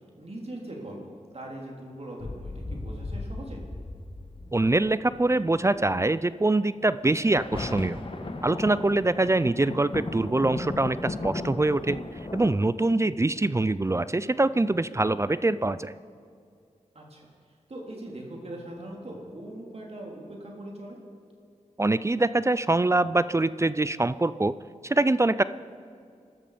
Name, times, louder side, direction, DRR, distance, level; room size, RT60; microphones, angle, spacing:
voice 1, 0.2-3.6 17.0-17.3 17.7-21.0, right 1 dB, 55° right, -1 dB, 3.7 m, -40 dB
sound 1, 2.2-5.8 7.0-12.5, left 2 dB, 45° left, 1.5 m, -36 dB
voice 2, 4.5-8.0 8.4-12.0 12.3-15.9 21.8-24.5 24.8-25.4, right 2 dB, 20° right, 16 dB, 0.4 m, -24 dB
21.0 x 13.0 x 5.1 m, 2.4 s
wide cardioid pair, 60°, 13 cm